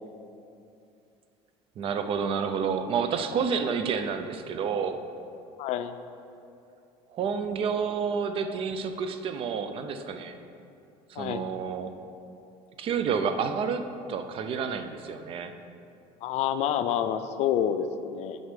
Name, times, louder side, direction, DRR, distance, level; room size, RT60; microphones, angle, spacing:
voice 1, 1.8-5.0 7.1-10.4 11.1-11.9 12.8-15.5, right 6 dB, 45° right, 8 dB, 0.6 m, -29 dB
voice 2, 5.6-5.9 11.2-11.4 16.2-18.4, left 9 dB, 60° left, 10 dB, 0.5 m, -28 dB
7.9 x 5.4 x 5.1 m, 2.6 s
cardioid pair, 115°, 13 cm